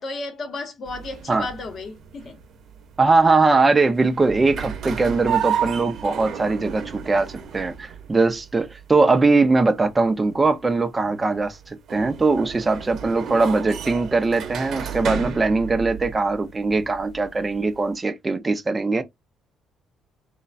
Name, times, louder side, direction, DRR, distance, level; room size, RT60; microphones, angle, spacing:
voice 1, 0.0-2.4, left 3 dB, 40° left, 0.7 m, -33 dB
sound 1, 0.8-17.9, right 8 dB, 50° right, 0.6 m, -33 dB
voice 2, 3.0-19.0, right 3 dB, 15° right, 0.3 m, -21 dB
3.1 x 2.0 x 2.5 m
cardioid pair, 150°, 0 cm